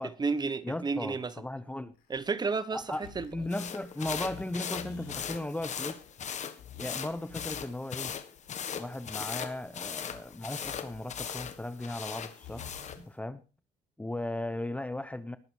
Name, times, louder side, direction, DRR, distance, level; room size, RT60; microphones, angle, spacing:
voice 1, 0.0-1.3 2.1-2.8 3.1-3.3, right 4 dB, 25° right, 1.1 m, -31 dB
voice 2, 0.6-2.0 2.7-6.0 6.8-8.1 8.8-12.7 13.0-13.4 14.0-15.4, left 1 dB, 10° left, 0.8 m, -37 dB
sound 1, 1.9-13.0, left 7 dB, 75° left, 4.3 m, -50 dB
sound 2, 3.5-13.0, left 8 dB, 45° left, 1.5 m, -39 dB
20.0 x 6.8 x 4.6 m
cardioid pair, 110°, 17 cm